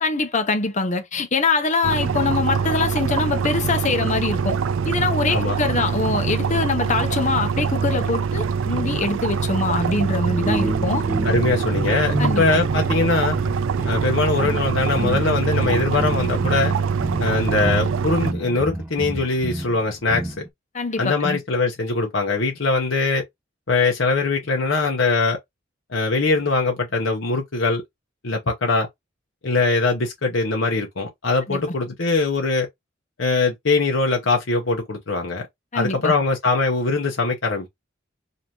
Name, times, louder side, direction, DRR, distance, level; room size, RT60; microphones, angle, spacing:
voice 1, 0.0-4.6 4.8-11.0 12.2-12.4 20.7-21.4 31.5-31.6 35.7-36.1, left 3 dB, 40° left, 0.8 m, -23 dB
sound 1, 1.8-18.3, right 6 dB, 85° right, 0.4 m, -24 dB
sound 2, 10.3-20.5, right 1 dB, 10° right, 0.7 m, -30 dB
voice 2, 11.2-13.4 13.8-16.7 17.2-20.4 21.0-23.2 23.7-25.4 25.9-27.8 28.2-28.9 29.4-32.7 33.2-35.5 35.7-37.7, left 3 dB, 75° left, 1.0 m, -22 dB
5.3 x 2.9 x 2.9 m
head